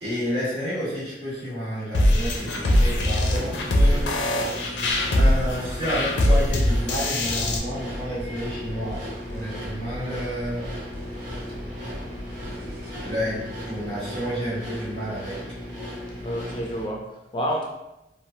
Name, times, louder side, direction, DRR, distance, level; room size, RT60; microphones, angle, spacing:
voice 1, 0.0-4.7 5.1-10.7 13.0-15.6, equal, 85° right, -9 dB, 1.5 m, -31 dB
sound 1, 1.9-7.6, left 1 dB, 85° left, 0.5 m, -21 dB
sound 2, 2.3-16.8, equal, 25° right, 1.3 m, -36 dB
sound 3, 4.9-13.9, equal, 60° right, 0.5 m, -39 dB
voice 2, 16.2-17.6, equal, 25° left, 0 dB, 0.3 m, -29 dB
3.1 x 2.0 x 2.7 m, 0.91 s
head